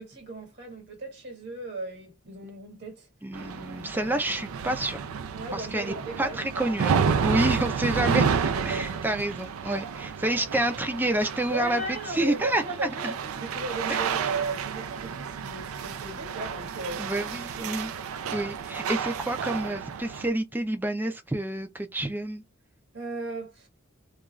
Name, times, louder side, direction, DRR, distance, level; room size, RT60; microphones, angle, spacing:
voice 1, 0.0-3.1 3.8-4.2 5.3-6.8 8.5-9.0 11.5-17.3 17.6-17.7 18.7-19.0 22.9-23.7, right 2 dB, 50° right, 1.1 m, -36 dB
voice 2, 3.2-5.0 5.5-8.3 8.6-13.1 13.9-14.0 17.0-17.9 18.3-22.4, right 1 dB, 10° right, 0.3 m, -29 dB
sound 1, 3.3-20.3, right 6 dB, 85° right, 0.4 m, -31 dB
2.4 x 2.3 x 3.0 m
head